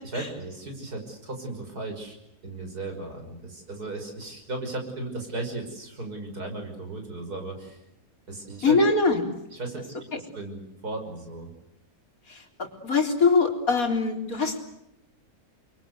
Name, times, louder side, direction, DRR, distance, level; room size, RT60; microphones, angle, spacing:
voice 1, 0.0-2.2 2.4-7.8 8.3-8.8 9.5-11.5, right 2 dB, 80° right, 4 dB, 6.4 m, -36 dB
voice 2, 8.6-9.2 10.1-10.2 12.3-14.6, left 4 dB, 60° left, 3 dB, 4.3 m, -23 dB
30.0 x 23.5 x 8.1 m, 0.83 s
omnidirectional pair, 1.6 m